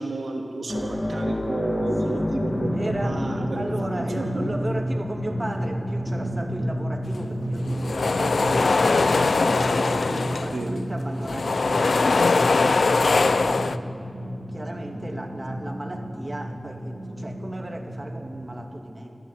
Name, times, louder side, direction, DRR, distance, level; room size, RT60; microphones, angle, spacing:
voice 1, 0.0-3.7 4.1-4.2 10.5-10.7, right 2 dB, 85° right, 1 dB, 2.7 m, -31 dB
sound 1, 0.7-9.6 10.0-10.1 12.2-12.3, left 1 dB, 35° left, 2.1 m, -32 dB
Drum, 2.4-18.6, equal, 60° right, 4.5 m, -32 dB
voice 2, 2.7-3.3 3.6-13.7 14.5-19.2, right 1 dB, 30° right, 3 dB, 2.8 m, -35 dB
sound 2, 7.6-10.8 11.1-13.8, left 3 dB, 80° left, 0.6 m, -21 dB
25.0 x 14.5 x 9.4 m, 2.6 s
cardioid pair, 40°, 0 cm